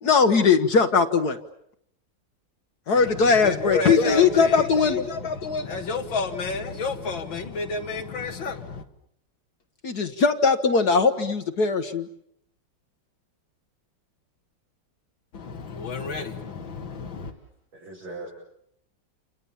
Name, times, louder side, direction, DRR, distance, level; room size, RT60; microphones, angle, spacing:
voice 1, 0.0-1.4 2.9-5.0 9.8-12.1, left 5 dB, 55° left, 1.7 m, -20 dB
voice 2, 2.9-8.8 15.3-17.3, left 4 dB, 85° left, 2.6 m, -30 dB
voice 3, 17.3-18.3, right 2 dB, 85° right, 7.5 m, -41 dB
29.5 x 27.0 x 7.1 m
omnidirectional pair, 2.1 m